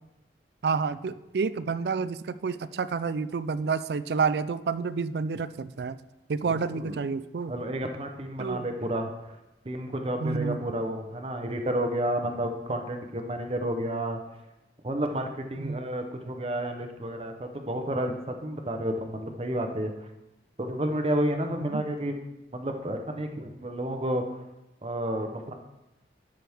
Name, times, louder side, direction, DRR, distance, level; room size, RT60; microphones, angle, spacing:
voice 1, 0.6-6.0 6.3-7.5 8.4-8.7 10.2-10.6 15.6-15.8 21.6-21.8, right 5 dB, 70° right, 14 dB, 0.4 m, -29 dB
voice 2, 7.5-9.4 9.6-14.2 14.8-19.9 20.6-22.2 22.5-24.4 24.8-25.5, right 1 dB, 35° right, 4 dB, 0.8 m, -31 dB
12.5 x 6.0 x 3.5 m, 0.95 s
head